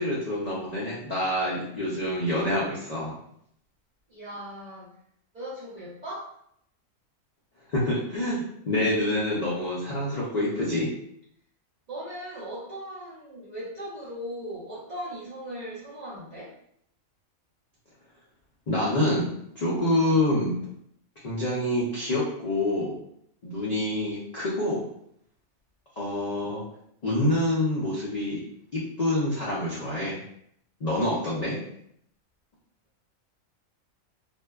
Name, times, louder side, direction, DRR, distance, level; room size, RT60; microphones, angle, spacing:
voice 1, 0.0-3.1 7.7-10.9 18.7-19.3 19.6-20.5 21.2-23.0 23.4-24.9 26.0-26.6 27.0-28.4 28.7-30.2 30.8-31.6, left 1 dB, 70° left, -7 dB, 0.4 m, -26 dB
voice 2, 4.1-4.9 5.3-6.3 11.9-16.5, equal, 45° right, -10 dB, 0.6 m, -38 dB
2.6 x 2.1 x 2.2 m, 0.71 s
omnidirectional pair, 1.4 m